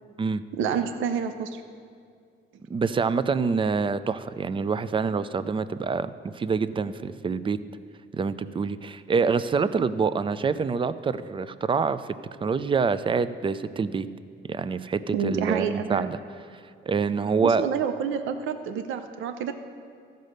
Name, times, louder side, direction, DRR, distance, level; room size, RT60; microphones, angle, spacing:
voice 1, 0.6-1.6 15.1-16.1 17.4-19.5, right 7 dB, 80° right, 8 dB, 0.6 m, -28 dB
voice 2, 2.7-7.6 8.1-12.1 12.4-14.1 14.5-16.2 16.9-17.6, right 5 dB, 25° right, 14 dB, 0.4 m, -26 dB
13.5 x 5.3 x 6.5 m, 2.2 s
cardioid pair, 90°, 20 cm